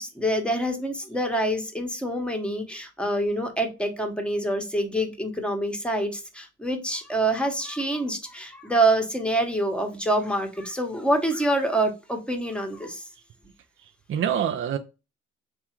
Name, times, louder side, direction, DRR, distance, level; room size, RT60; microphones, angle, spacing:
voice 1, 0.0-13.0, right 1 dB, 5° left, 4 dB, 1.0 m, -26 dB
voice 2, 13.8-14.8, right 9 dB, 45° right, 6 dB, 0.4 m, -27 dB
3.6 x 2.4 x 4.3 m, 0.29 s
cardioid pair, 90°, 30 cm